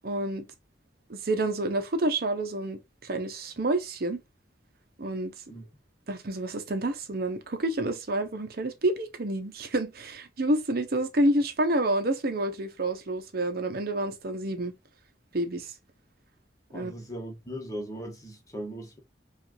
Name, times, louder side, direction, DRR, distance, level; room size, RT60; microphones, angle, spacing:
voice 1, 0.0-0.4 1.1-4.2 5.0-5.3 6.1-14.7 15.3-15.7 16.7-16.9, right 1 dB, 55° right, 0.7 m, -28 dB
voice 2, 16.7-19.0, equal, 20° left, 1.2 m, -38 dB
5.6 x 2.4 x 2.7 m
head